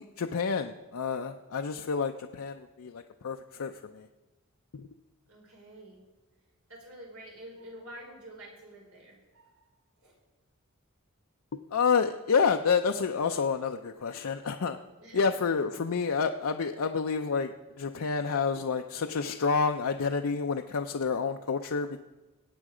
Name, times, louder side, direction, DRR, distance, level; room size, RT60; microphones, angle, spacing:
voice 1, 0.0-4.1 4.7-4.9 11.7-14.8 15.1-22.0, left 5 dB, 75° left, 5 dB, 0.6 m, -29 dB
voice 2, 5.3-6.0 6.7-9.6 10.0-10.1 15.0-15.3, right 1 dB, 75° right, -2 dB, 4.9 m, -48 dB
20.5 x 8.5 x 5.0 m, 1.2 s
head